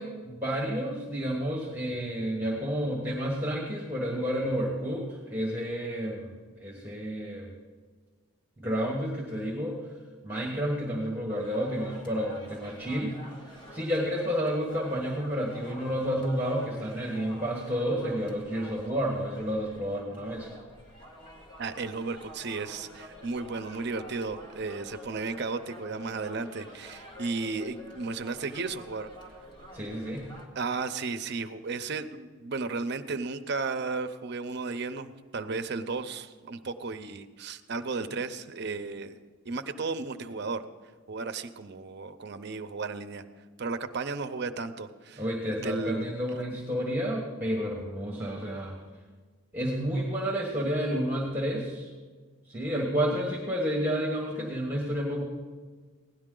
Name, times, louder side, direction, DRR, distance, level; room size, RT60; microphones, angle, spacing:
voice 1, 0.0-6.3 6.6-7.5 8.6-9.8 10.2-13.2 13.4-20.5 29.7-30.3 45.2-48.8 49.5-51.9 52.5-55.2, equal, 10° right, -2 dB, 1.3 m, -30 dB
sound 1, 11.3-30.5, equal, 20° left, 1.6 m, -48 dB
voice 2, 21.6-29.1 30.6-39.2 39.4-40.7 41.1-43.2 43.6-45.2 45.6-46.1, right 4 dB, 50° right, 9 dB, 0.6 m, -34 dB
16.5 x 11.0 x 3.8 m, 1.5 s
head